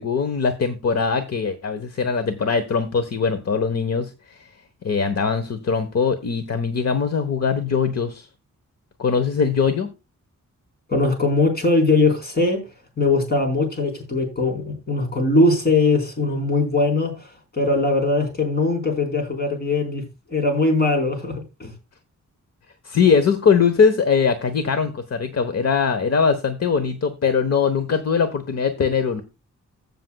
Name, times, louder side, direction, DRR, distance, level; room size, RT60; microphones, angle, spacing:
voice 1, 0.0-4.5 4.8-8.3 9.0-9.9 22.8-29.2, left 5 dB, 55° left, 1.1 m, -21 dB
voice 2, 10.9-12.6 13.0-20.0 20.3-21.7, left 2 dB, 30° left, 4.2 m, -21 dB
16.0 x 6.8 x 2.3 m
wide cardioid pair, 160°, 30 cm